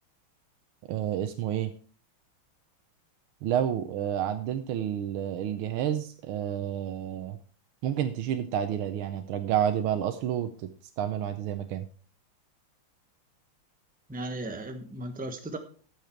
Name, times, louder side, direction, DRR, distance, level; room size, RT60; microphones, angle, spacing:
voice 1, 0.9-1.7 3.4-7.4 7.8-10.5 11.0-11.8, right 10 dB, 85° right, 8 dB, 1.6 m, -29 dB
voice 2, 14.1-15.6, right 1 dB, 5° right, 6 dB, 0.7 m, -36 dB
13.5 x 6.6 x 4.6 m, 0.42 s
omnidirectional pair, 2.3 m